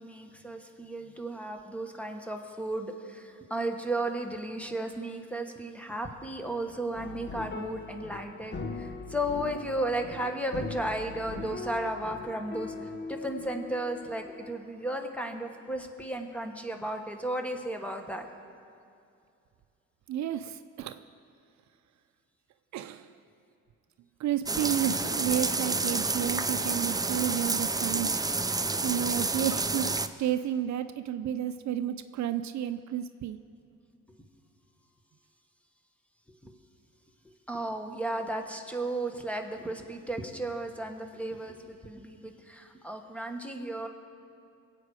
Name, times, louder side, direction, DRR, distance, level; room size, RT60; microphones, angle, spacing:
voice 1, 0.0-18.3 36.4-36.5 37.5-43.9, right 1 dB, 5° left, 4 dB, 1.4 m, -34 dB
sound 1, 7.0-14.6 14.9-15.0, left 3 dB, 35° left, 1.0 m, -41 dB
voice 2, 20.1-21.0 22.7-23.1 24.2-28.2 28.8-29.9 30.2-33.4, right 11 dB, 65° right, 11 dB, 0.6 m, -31 dB
sound 2, 24.5-30.1, right 3 dB, 10° right, 0.5 m, -29 dB
22.5 x 8.4 x 4.9 m, 2.5 s
cardioid pair, 90°, 30 cm